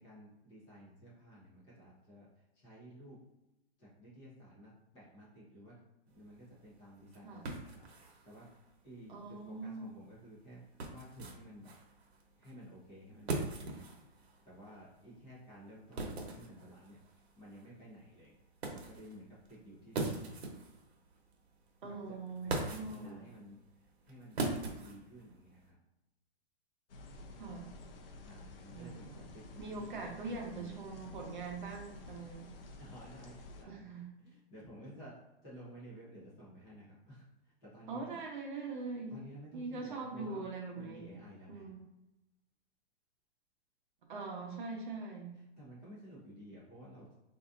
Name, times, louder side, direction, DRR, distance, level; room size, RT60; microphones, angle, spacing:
voice 1, 0.0-3.2 3.8-5.8 6.0-8.5 8.8-11.7 12.4-18.3 18.6-20.5 21.8-22.0 22.4-24.5 24.7-25.8 28.2-30.9 32.8-33.8 34.2-38.2 38.8-40.5 40.7-41.7 45.3-47.2, equal, 15° left, -7 dB, 0.8 m, -54 dB
sound 1, 6.1-25.7, right 3 dB, 75° right, 0.9 m, -43 dB
voice 2, 9.1-9.9 21.8-23.3 27.4-27.7 28.7-29.2 29.6-32.5 33.7-34.1 37.9-39.2 39.5-41.2 41.5-41.8 44.1-45.4, right 3 dB, 50° right, 1 dB, 0.8 m, -42 dB
sound 2, 26.9-33.6, left 2 dB, 60° left, 0.6 m, -52 dB
4.0 x 2.7 x 2.5 m, 0.94 s
hypercardioid pair, 170°, 32 cm